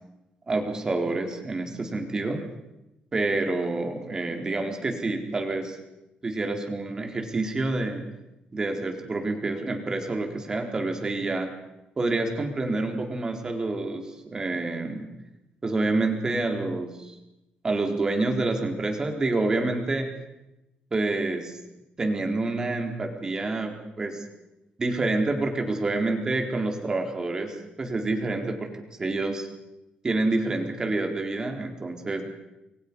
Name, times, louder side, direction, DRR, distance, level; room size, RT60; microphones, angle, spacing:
voice 1, 0.5-2.4 3.1-5.8 6.2-8.0 8.5-11.5 12.0-15.1 15.6-17.1 17.6-20.1 20.9-21.6 22.0-24.2 24.8-28.7 29.0-29.5 30.0-32.2, right 2 dB, 25° right, 3 dB, 4.1 m, -28 dB
29.5 x 23.0 x 5.5 m, 0.93 s
cardioid pair, 150°, 3 cm